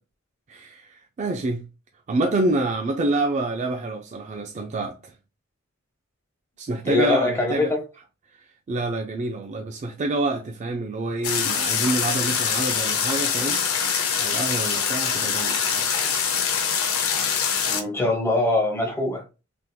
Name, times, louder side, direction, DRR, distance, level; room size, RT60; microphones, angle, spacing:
voice 1, 0.5-1.6 2.1-4.9 6.6-7.7 8.7-13.6 14.2-15.8, right 2 dB, 35° right, 0.3 m, -27 dB
voice 2, 6.8-7.8 17.7-19.2, left 2 dB, 10° left, 0.8 m, -23 dB
sound 1, 11.2-17.8, left 6 dB, 70° left, 0.7 m, -24 dB
3.4 x 2.9 x 2.2 m
head